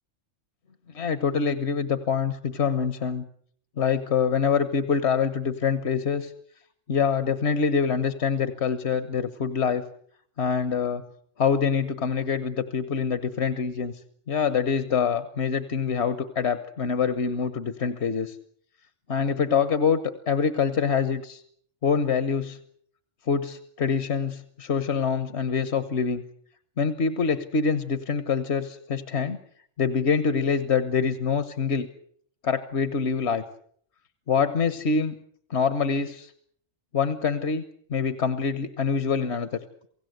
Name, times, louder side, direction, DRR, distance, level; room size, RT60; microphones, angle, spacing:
voice 1, 0.9-3.2 3.8-6.3 6.9-9.8 10.4-11.0 11.4-13.9 14.3-18.4 19.1-21.4 21.8-22.6 23.3-26.2 26.8-29.4 29.8-31.9 32.4-33.4 34.3-35.1 35.5-36.3 36.9-37.6 37.9-39.5, left 6 dB, 60° left, 11 dB, 1.5 m, -25 dB
28.5 x 17.5 x 8.0 m, 0.64 s
omnidirectional pair, 1.3 m